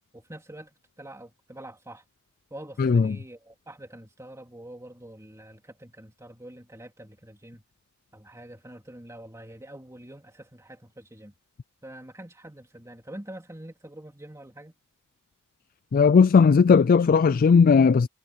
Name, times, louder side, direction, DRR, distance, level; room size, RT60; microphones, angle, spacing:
voice 1, 0.1-2.0 2.5-7.6 8.1-11.3 11.8-14.7, right 1 dB, 15° right, 3.1 m, -45 dB
voice 2, 15.9-18.1, left 5 dB, 40° left, 0.3 m, -17 dB
head